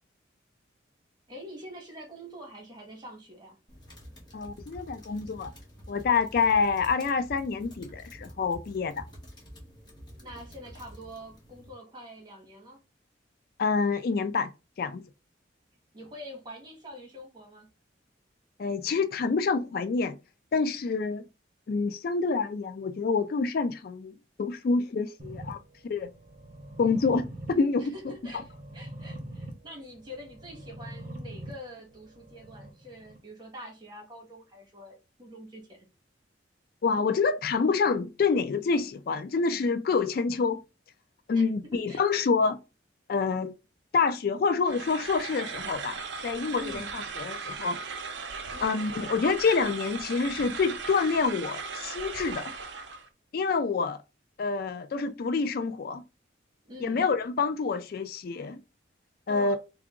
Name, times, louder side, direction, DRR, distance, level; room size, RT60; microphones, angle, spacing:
voice 1, 1.3-3.6 10.2-12.8 15.9-17.7 27.8-35.9 41.3-42.0 46.5-47.0 48.5-48.8 56.6-57.1 59.3-59.6, equal, 25° right, 1.4 m, -45 dB
sound 1, 3.7-11.7, equal, 20° left, 1.4 m, -48 dB
voice 2, 4.3-5.5 5.9-9.0 13.6-14.5 14.8-15.0 18.6-20.2 20.5-21.2 21.7-24.1 24.4-25.6 25.9-26.1 26.8-27.9 36.8-40.6 41.3-42.6 43.1-43.5 43.9-47.8 48.6-52.5 53.3-54.0 54.4-56.0 56.8-58.6 59.3-59.6, left 4 dB, 50° left, 0.3 m, -27 dB
sound 2, 25.2-33.2, right 1 dB, 45° right, 0.9 m, -44 dB
sound 3, 44.7-53.1, right 4 dB, 70° right, 0.6 m, -38 dB
3.7 x 2.3 x 3.6 m
head